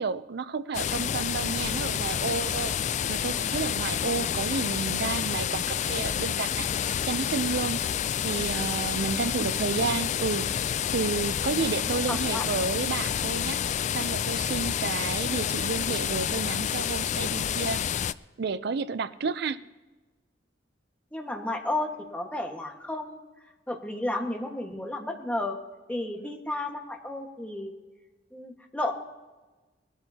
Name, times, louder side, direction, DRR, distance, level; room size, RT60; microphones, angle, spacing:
voice 1, 0.0-7.8 8.2-10.6 10.9-13.6 13.9-17.8 18.4-19.6, right 4 dB, 60° right, 14 dB, 0.5 m, -31 dB
sound 1, 0.7-18.1, left 9 dB, 40° left, 0.3 m, -29 dB
voice 2, 11.9-12.5 21.1-23.2 23.7-25.6 25.9-27.7 28.3-28.9, left 1 dB, 10° left, 1 dB, 1.5 m, -32 dB
20.5 x 12.5 x 2.8 m, 1.2 s
head